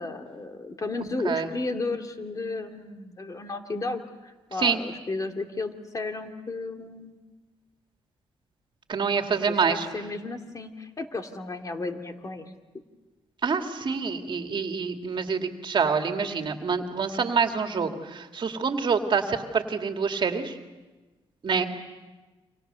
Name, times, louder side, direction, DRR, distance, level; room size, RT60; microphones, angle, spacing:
voice 1, 0.0-7.2 9.3-12.5 21.5-21.6, left 3 dB, 35° left, 5 dB, 2.5 m, -34 dB
voice 2, 8.9-9.9 13.4-20.5 21.4-21.6, right 5 dB, 50° right, 5 dB, 2.2 m, -26 dB
29.5 x 25.0 x 6.9 m, 1.2 s
cardioid pair, 85°, 10 cm